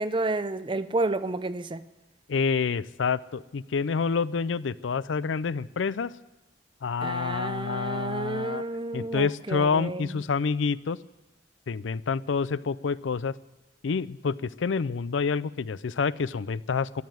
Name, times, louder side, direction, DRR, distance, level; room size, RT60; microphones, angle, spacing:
voice 1, 0.0-1.8 7.0-10.1, right 2 dB, 25° right, 0.6 m, -30 dB
voice 2, 2.3-6.1 6.8-8.6 8.9-11.0 11.7-13.4 13.8-17.0, left 5 dB, 90° left, 0.5 m, -28 dB
14.0 x 10.5 x 9.2 m
head